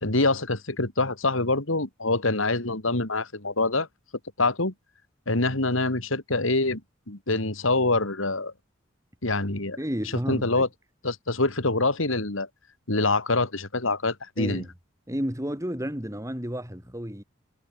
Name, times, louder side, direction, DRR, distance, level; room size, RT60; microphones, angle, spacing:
voice 1, 0.0-3.9 4.4-4.7 5.3-6.8 7.1-8.5 9.2-9.8 10.3-10.7 11.0-12.5 12.9-14.6, left 2 dB, 80° left, 3.4 m, -25 dB
voice 2, 9.8-10.7 14.4-14.7 15.1-17.2, equal, 15° right, 6.2 m, -31 dB
head